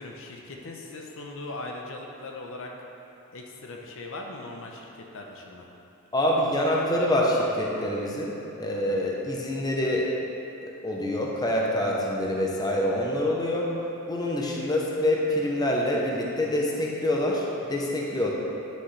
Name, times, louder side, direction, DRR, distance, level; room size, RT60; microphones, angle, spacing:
voice 1, 0.0-2.7 3.3-5.7, left 2 dB, 60° left, 1 dB, 0.7 m, -39 dB
voice 2, 6.1-10.1 10.6-13.7 14.1-18.3, left 1 dB, 20° left, -2 dB, 0.8 m, -26 dB
9.7 x 6.4 x 3.2 m, 2.9 s
head